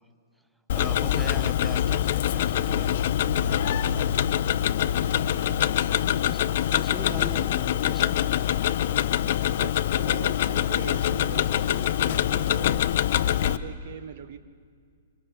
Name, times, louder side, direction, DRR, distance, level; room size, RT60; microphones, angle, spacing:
Tick-tock, 0.7-13.6, left 11 dB, 55° left, 0.6 m, -24 dB
voice 1, 0.7-3.0 6.0-8.2, right 1 dB, 5° right, 11 dB, 0.9 m, -39 dB
voice 2, 3.9-4.4 5.4-5.8 8.8-9.2 9.6-12.8 13.1-14.4, right 8 dB, 55° right, 11 dB, 1.2 m, -41 dB
28.0 x 27.0 x 3.5 m, 2.1 s
figure-of-eight pair, 115°, 0 cm